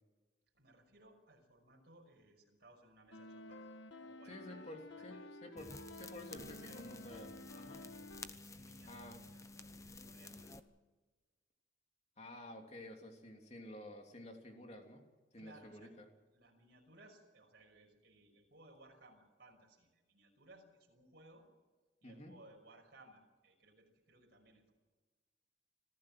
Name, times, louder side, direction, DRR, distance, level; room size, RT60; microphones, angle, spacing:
voice 1, 0.5-3.7 4.0-5.3 6.4-6.8 7.7-7.9 8.3-10.6 15.4-15.9 16.3-21.5 22.0-24.7, right 2 dB, 55° right, 2 dB, 5.9 m, -63 dB
sound 1, 3.1-8.3, left 2 dB, 75° left, 1.4 m, -52 dB
voice 2, 4.3-5.2 5.4-7.8 8.9-9.2 12.2-15.1 15.3-16.0 22.0-22.3, left 1 dB, 35° left, 3 dB, 3.2 m, -51 dB
sound 2, 5.6-10.6, left 3 dB, 15° left, 0.8 m, -52 dB
26.0 x 15.0 x 7.7 m, 1.3 s
head